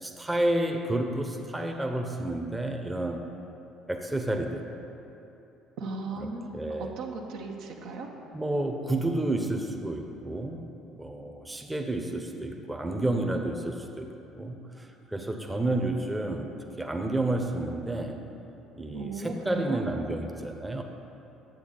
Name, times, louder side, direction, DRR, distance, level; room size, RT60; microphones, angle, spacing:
voice 1, 0.0-3.2 3.9-4.6 6.2-6.3 6.5-6.9 8.3-10.6 11.0-14.1 14.4-16.5 16.8-18.2 18.7-20.8, right 1 dB, 10° right, 3 dB, 0.9 m, -30 dB
voice 2, 5.8-8.1 18.9-19.8, right 3 dB, 65° right, 1 dB, 1.0 m, -36 dB
10.5 x 8.1 x 4.0 m, 3.0 s
figure-of-eight pair, 55°, 0 cm